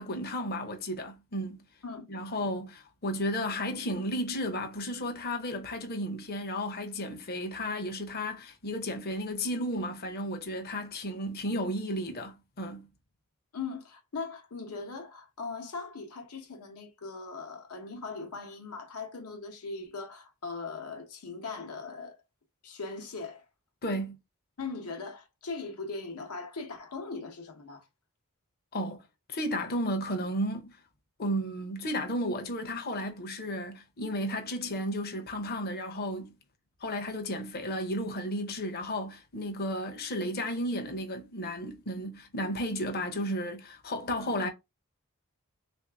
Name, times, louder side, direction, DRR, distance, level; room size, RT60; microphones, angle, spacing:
voice 1, 0.0-1.6 2.1-12.9 23.8-24.2 28.7-29.0 29.3-30.8 31.2-36.3 36.8-44.5, equal, 45° left, 0.6 m, -33 dB
voice 2, 13.5-22.2 22.6-23.5 24.6-27.9, left 4 dB, 85° left, 0.9 m, -39 dB
3.3 x 2.6 x 3.3 m
head